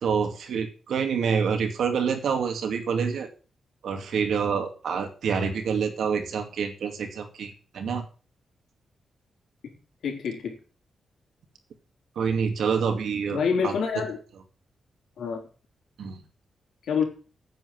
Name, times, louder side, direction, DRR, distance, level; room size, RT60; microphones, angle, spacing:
voice 1, 0.0-3.3 3.8-8.0 12.2-13.7 16.0-16.2, right 6 dB, 80° right, 2.4 m, -27 dB
voice 2, 10.0-10.6 13.3-14.2 15.2-15.4 16.9-17.0, left 6 dB, 85° left, 4.1 m, -26 dB
9.2 x 7.7 x 7.8 m
wide cardioid pair, 130°, 0 cm